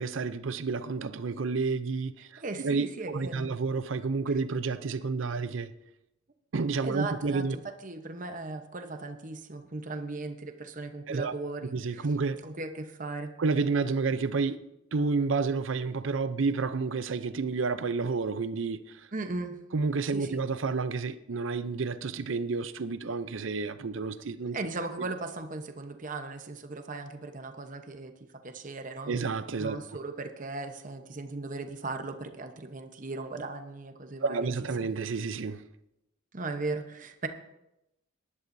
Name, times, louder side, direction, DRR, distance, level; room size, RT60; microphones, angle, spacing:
voice 1, 0.0-5.7 6.5-7.6 11.1-11.3 11.7-12.5 13.4-14.6 14.9-19.1 19.7-24.6 29.1-29.8 34.2-35.6, right 4 dB, 75° right, 0.6 m, -30 dB
voice 2, 2.4-3.5 6.8-12.1 12.4-13.3 19.1-19.6 20.1-20.4 24.5-28.1 28.4-29.1 29.6-34.5 36.3-37.3, right 3 dB, 40° right, 1.0 m, -37 dB
18.5 x 11.0 x 2.7 m
head